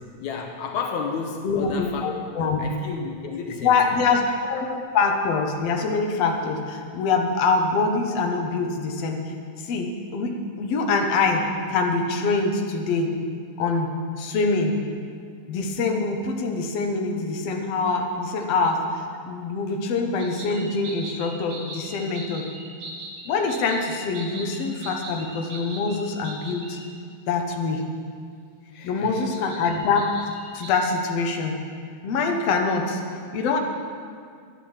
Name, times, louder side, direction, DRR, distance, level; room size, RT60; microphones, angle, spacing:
voice 1, 0.0-2.1 2.6-3.9 28.7-29.2, left 5 dB, 80° left, 2 dB, 2.3 m, -32 dB
voice 2, 1.4-2.7 3.6-9.2 9.6-10.3 10.6-13.1 13.6-14.8 15.5-22.5 23.3-26.8 27.3-27.8 28.8-30.2 30.5-31.6 32.0-33.0 33.3-33.6, left 4 dB, 60° left, 2 dB, 2.1 m, -24 dB
sound 1, 20.2-26.8 29.3-30.8, right 2 dB, 75° right, 3.4 m, -40 dB
12.0 x 9.8 x 7.3 m, 2.2 s
omnidirectional pair, 3.4 m